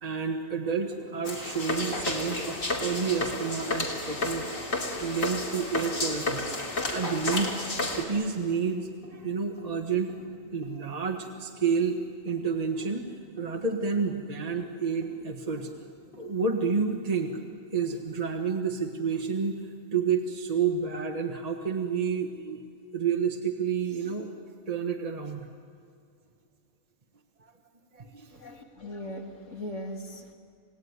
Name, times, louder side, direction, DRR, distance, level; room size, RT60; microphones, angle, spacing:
voice 1, 0.0-4.4 5.0-10.2 10.5-12.0 12.2-13.1 13.4-15.7 16.2-17.4 17.7-19.6 19.9-22.6 22.9-24.3 24.7-25.5 27.9-28.4, right 5 dB, 30° right, 3 dB, 1.6 m, -30 dB
sound 1, 0.9-17.9, left 2 dB, 40° left, 5.3 m, -48 dB
sound 2, 1.2-8.0, left 2 dB, 85° left, 3.4 m, -31 dB
voice 2, 28.3-30.3, left 1 dB, 65° left, 2 dB, 2.9 m, -39 dB
30.0 x 17.5 x 9.7 m, 2.3 s
omnidirectional pair, 1.4 m